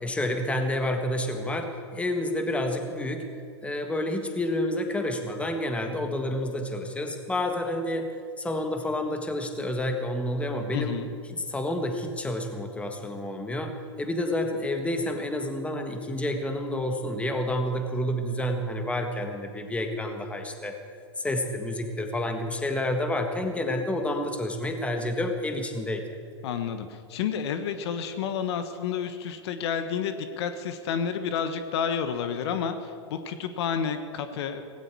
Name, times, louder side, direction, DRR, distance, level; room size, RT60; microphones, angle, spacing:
voice 1, 0.0-3.3 3.6-11.0 11.3-20.8 21.2-26.0, left 1 dB, 10° left, 5 dB, 1.6 m, -29 dB
voice 2, 10.7-11.1 26.4-34.6, left 7 dB, 65° left, 9 dB, 1.3 m, -30 dB
17.0 x 17.0 x 4.7 m, 2.3 s
hypercardioid pair, 120°, 15 cm